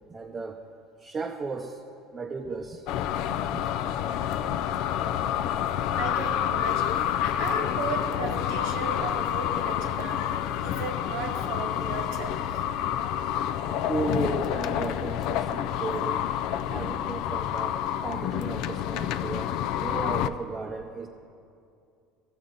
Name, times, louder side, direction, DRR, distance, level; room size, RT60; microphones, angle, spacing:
voice 1, 0.1-0.6 1.0-1.8 2.1-2.9 3.5-3.6 13.7-16.2 16.6-21.1, right 4 dB, 25° right, 2 dB, 0.6 m, -35 dB
sound 1, 2.9-20.3, left 10 dB, 65° left, 0.3 m, -28 dB
voice 2, 5.9-7.0 7.3-10.3 10.6-12.6, right 4 dB, 80° right, 3 dB, 1.4 m, -35 dB
15.0 x 6.9 x 3.9 m, 2.5 s
supercardioid pair, 95°, 0 cm